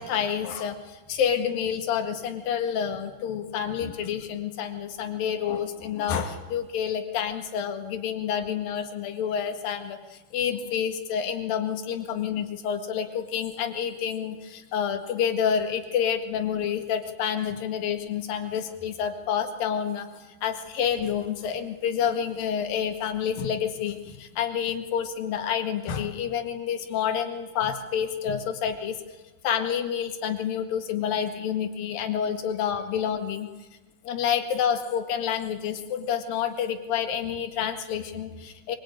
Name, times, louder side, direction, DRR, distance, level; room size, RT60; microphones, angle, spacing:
voice 1, 0.0-29.0 29.4-33.5 34.0-38.8, left 8 dB, 70° left, 6 dB, 3.5 m, -28 dB
24.0 x 23.5 x 9.1 m, 1.1 s
omnidirectional pair, 4.4 m